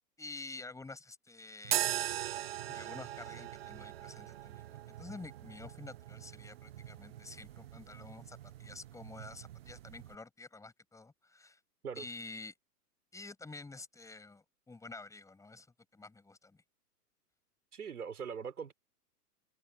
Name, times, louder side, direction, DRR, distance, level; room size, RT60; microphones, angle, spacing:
voice 1, 0.2-2.1 2.7-11.6 11.9-12.5 13.1-16.6, left 3 dB, 5° left, 4.9 m, -49 dB
sound 1, 1.6-10.2, right 13 dB, 40° right, 0.6 m, -41 dB
voice 2, 17.7-18.7, right 6 dB, 65° right, 4.1 m, -41 dB
figure-of-eight pair, 110°, 47 cm